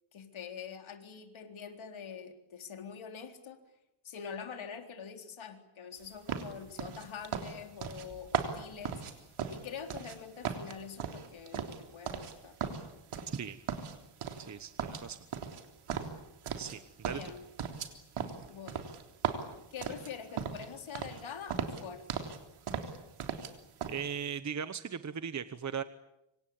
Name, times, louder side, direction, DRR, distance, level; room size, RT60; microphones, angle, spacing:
voice 1, 0.1-3.6 4.0-12.6 17.1-17.5 18.5-18.8 19.7-22.2, left 7 dB, 70° left, 5 dB, 4.0 m, -45 dB
sound 1, 6.3-10.2 10.4-12.3 12.6-13.4 13.7-14.5 14.8-16.8 17.0-20.7 21.0-21.2 21.5-22.4 22.7-23.5 23.8-24.0, right 7 dB, 85° right, 3.6 m, -37 dB
voice 2, 13.3-13.6 14.4-15.2 16.6-17.2 23.9-25.8, right 7 dB, 35° right, 12 dB, 1.0 m, -38 dB
27.0 x 25.0 x 8.8 m, 0.90 s
wide cardioid pair, 145°, 49 cm